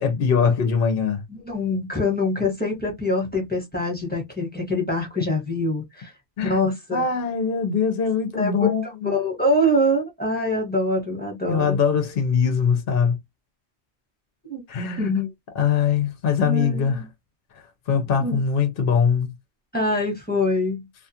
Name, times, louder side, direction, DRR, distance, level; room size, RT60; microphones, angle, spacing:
voice 1, 0.0-1.2 6.4-6.6 6.9-9.1 11.5-13.2 14.7-15.1 15.6-17.0 17.9-19.3, left 6 dB, 55° left, 0.7 m, -22 dB
voice 2, 1.3-6.1 6.4-7.1 8.3-11.8 14.4-14.6 15.0-15.3 16.4-17.1 18.2-18.4 19.7-20.8, left 1 dB, 10° left, 1.0 m, -24 dB
2.4 x 2.3 x 2.7 m
omnidirectional pair, 1.4 m